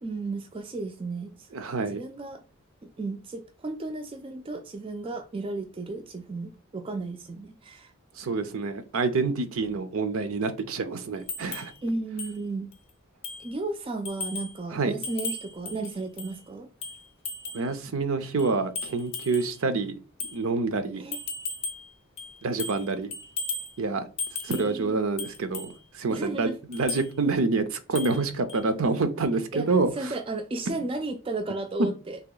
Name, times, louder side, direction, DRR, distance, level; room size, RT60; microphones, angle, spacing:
voice 1, 0.0-1.5 1.9-2.4 3.0-7.9 11.8-12.7 13.4-16.7 20.9-21.2 24.5-25.0 26.1-26.6 29.5-32.2, right 2 dB, 25° right, 0.3 m, -34 dB
voice 2, 1.5-2.0 8.2-11.7 14.7-14.9 17.5-20.0 20.3-21.1 22.4-23.1 23.8-24.1 24.4-29.9 31.8-31.9, right 3 dB, 70° right, 0.6 m, -27 dB
sound 1, 11.3-11.7 12.2-12.3 12.7-12.8 13.2-13.5 14.0-14.6 15.0-16.4 16.8-17.7 18.4-19.5 20.2-20.4 21.1-21.9 22.2-22.9 23.1-23.7 24.2-24.7 25.2-25.7 26.7-27.1 27.9-28.2 28.5-28.6, left 3 dB, 30° left, 0.5 m, -35 dB
3.0 x 2.9 x 3.8 m
head